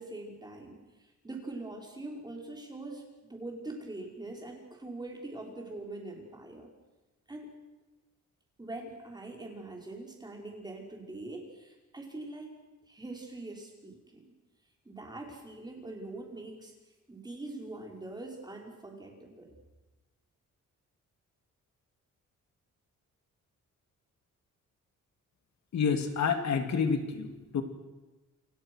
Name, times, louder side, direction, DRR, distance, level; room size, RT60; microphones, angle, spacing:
voice 1, 0.0-6.7 7.3-7.5 8.6-12.5 12.9-14.2 14.9-16.7 17.1-19.5, right 2 dB, 15° right, 1 dB, 5.3 m, -43 dB
voice 2, 25.7-27.6, left 6 dB, 60° left, 6 dB, 2.7 m, -29 dB
29.0 x 28.0 x 6.4 m, 1.1 s
wide cardioid pair, 170°, 30 cm